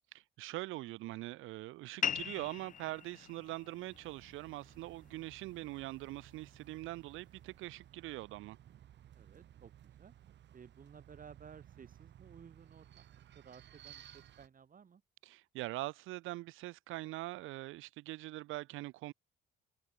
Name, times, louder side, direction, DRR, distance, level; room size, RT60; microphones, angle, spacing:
voice 1, 0.1-8.6 15.2-19.1, right 18 dB, 90° right, 0.7 m, -43 dB
sound 1, 2.0-7.1, left 8 dB, 40° left, 0.6 m, -43 dB
sound 2, 3.9-14.5, right 11 dB, 65° right, 1.2 m, -58 dB
voice 2, 9.1-10.1 10.5-15.0, right 7 dB, 45° right, 2.7 m, -57 dB
open air
cardioid pair, 90°, 20 cm